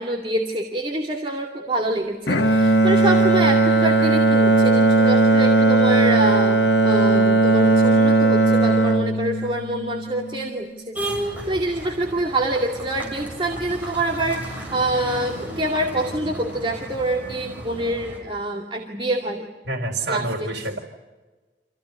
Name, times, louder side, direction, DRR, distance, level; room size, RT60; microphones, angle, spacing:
voice 1, 0.0-19.5 20.1-20.8, right 1 dB, 30° right, 0 dB, 2.3 m, -26 dB
Bowed string instrument, 2.3-10.5, right 2 dB, 75° left, 1.4 m, -17 dB
sound 1, 10.9-18.2, right 1 dB, 10° right, 7.2 m, -34 dB
voice 2, 19.6-20.8, right 2 dB, 65° right, -3 dB, 4.2 m, -27 dB
27.0 x 16.0 x 10.0 m, 1.2 s
head